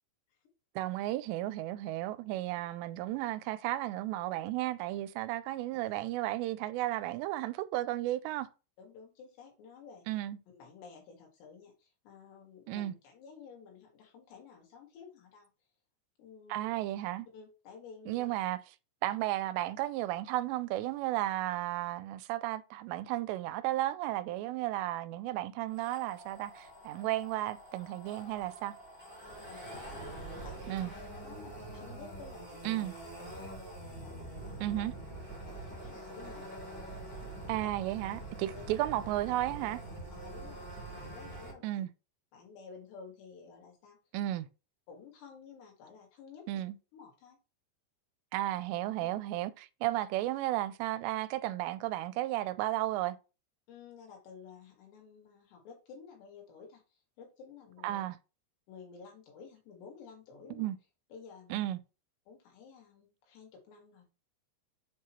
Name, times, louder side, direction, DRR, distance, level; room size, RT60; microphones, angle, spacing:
voice 1, 0.8-8.5 10.1-10.4 12.7-12.9 16.5-17.3 18.1-18.6 19.0-28.8 30.7-30.9 32.7-32.9 34.6-34.9 37.5-39.8 41.6-41.9 44.1-44.5 46.5-46.8 48.3-53.2 57.8-58.2 60.5-60.8 61.5-61.8, right 15 dB, 85° right, 2.7 m, -34 dB
voice 2, 8.8-10.1 10.5-15.5 16.2-16.7 17.3-18.3 29.2-30.9 31.2-32.8 33.2-33.5 34.0-34.6 35.5-36.5 38.5-38.6 40.1-41.8 42.3-44.0 44.9-46.6 46.9-47.4 49.0-49.1 53.7-56.8 57.2-58.0 58.7-60.7 61.1-61.7 62.3-64.1, left 5 dB, 80° left, 4.0 m, -52 dB
sound 1, 25.7-41.5, right 2 dB, 5° left, 2.0 m, -45 dB
7.4 x 4.7 x 3.0 m
omnidirectional pair, 5.0 m